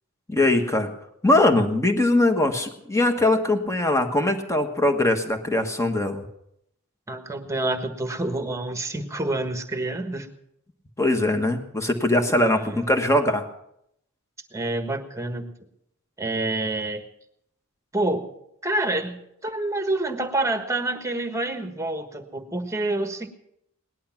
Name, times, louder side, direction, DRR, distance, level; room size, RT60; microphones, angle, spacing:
voice 1, 0.3-0.9 1.2-6.2 11.0-13.5, left 2 dB, 15° left, 6 dB, 1.4 m, -21 dB
voice 2, 7.1-10.3 12.4-12.9 14.5-15.5 16.2-17.0 17.9-18.3 18.6-23.3, right 2 dB, 15° right, 7 dB, 1.4 m, -27 dB
19.0 x 11.5 x 5.9 m, 0.76 s
head